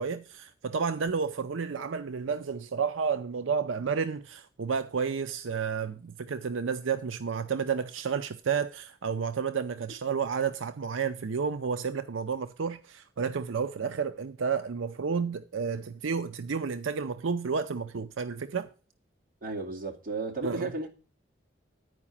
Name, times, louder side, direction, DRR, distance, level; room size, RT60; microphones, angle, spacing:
voice 1, 0.0-18.7 20.4-20.7, right 6 dB, 85° right, 0.5 m, -31 dB
voice 2, 19.4-20.9, right 3 dB, 45° right, 2.5 m, -34 dB
10.0 x 4.9 x 7.2 m
head